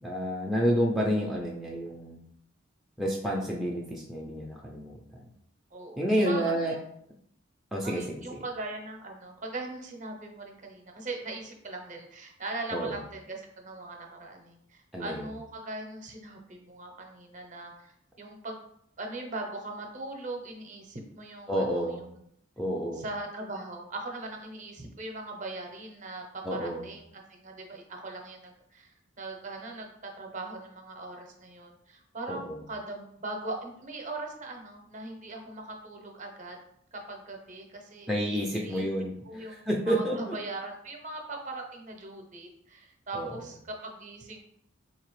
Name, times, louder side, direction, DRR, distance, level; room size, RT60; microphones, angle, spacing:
voice 1, 0.0-2.2 3.0-5.3 6.0-6.7 7.7-8.2 12.7-13.0 14.9-15.3 21.5-22.0 22.6-23.0 26.4-26.9 32.3-32.6 38.1-40.4 43.1-43.3, equal, ahead, -3 dB, 0.4 m, -29 dB
voice 2, 5.7-6.8 7.8-18.6 19.0-22.1 23.0-36.6 36.9-38.1 38.5-38.9 39.2-44.4, right 2 dB, 40° right, 2 dB, 0.7 m, -40 dB
4.0 x 2.8 x 3.0 m, 0.71 s
head